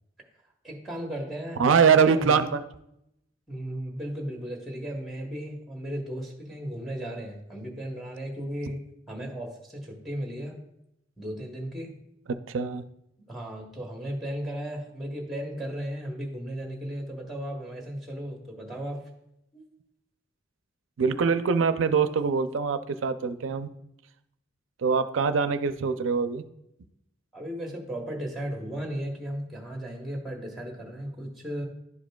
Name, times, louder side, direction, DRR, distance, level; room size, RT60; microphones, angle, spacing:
voice 1, 0.6-2.5 3.5-8.8 9.1-10.6 11.2-11.9 13.3-19.1 19.5-19.6 27.3-31.7, equal, ahead, 1 dB, 1.0 m, -35 dB
voice 2, 1.6-2.6 12.3-12.8 21.0-23.7 24.8-26.4, right 5 dB, 85° right, 11 dB, 0.4 m, -23 dB
11.0 x 5.0 x 2.3 m, 0.80 s
head